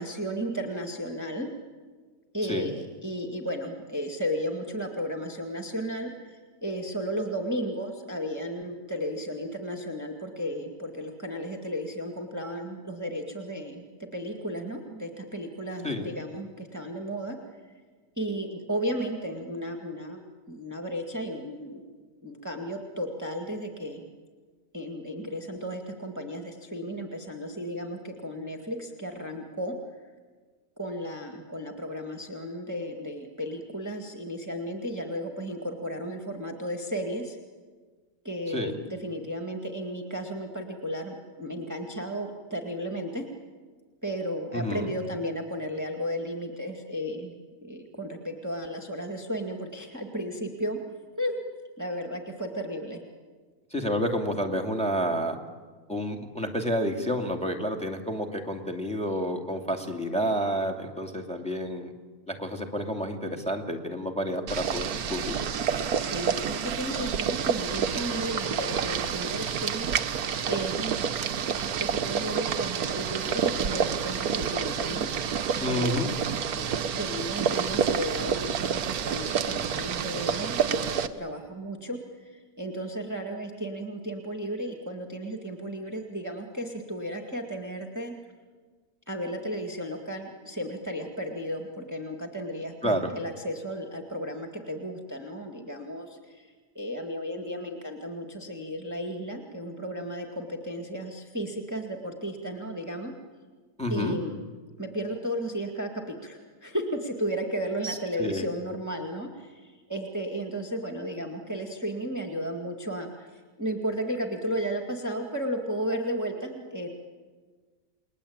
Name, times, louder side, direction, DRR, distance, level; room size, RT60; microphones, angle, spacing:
voice 1, 0.0-1.5 2.3-17.4 18.2-20.2 20.5-21.9 22.2-24.1 24.7-29.8 30.8-37.4 38.2-43.3 44.0-47.3 47.6-50.8 51.2-51.3 51.8-53.0 66.0-71.3 71.8-75.1 75.4-76.3 76.5-82.0 82.2-88.1 89.1-103.1 103.9-104.4 104.8-113.3 113.6-116.9, equal, 10° right, 2 dB, 2.1 m, -34 dB
voice 2, 44.5-44.9 53.7-55.4 55.9-61.9 62.3-65.4 75.6-76.1 92.8-93.0 103.8-104.2 107.8-108.5, equal, 5° left, 4 dB, 2.4 m, -29 dB
Boiling, 64.5-81.1, right 7 dB, 75° right, 1.5 m, -29 dB
29.5 x 21.0 x 8.8 m, 1.5 s
omnidirectional pair, 1.6 m